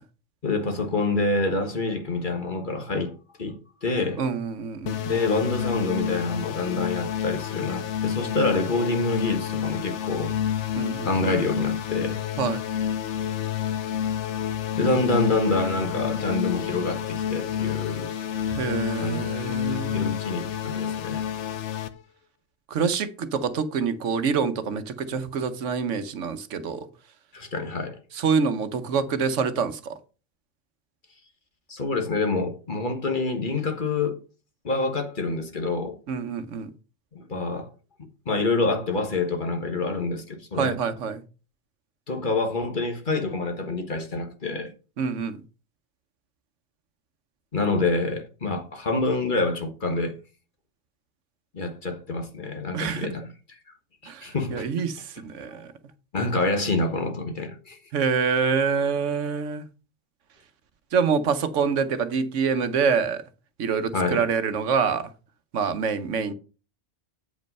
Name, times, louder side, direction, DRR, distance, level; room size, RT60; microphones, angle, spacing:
voice 1, 0.4-3.1 3.4-4.2 5.0-10.3 11.0-12.2 14.7-18.1 19.0-21.2 27.3-28.0 31.7-34.2 34.6-36.0 37.1-37.7 38.3-40.8 42.1-44.7 47.5-50.2 51.5-53.3 54.0-54.7 56.1-57.8 63.9-64.2, left 3 dB, 45° left, 1.4 m, -27 dB
voice 2, 4.2-5.1 10.8-11.1 12.4-12.6 18.5-20.0 20.6-20.8 22.7-26.9 28.1-29.9 36.1-36.7 40.6-41.2 45.0-45.4 52.7-53.1 54.1-55.7 57.9-59.7 60.9-63.2 63.6-65.1 65.5-66.3, right 6 dB, 75° right, 1.2 m, -26 dB
sound 1, 4.9-21.9, left 9 dB, 75° left, 1.0 m, -29 dB
8.3 x 5.3 x 5.3 m
omnidirectional pair, 1.3 m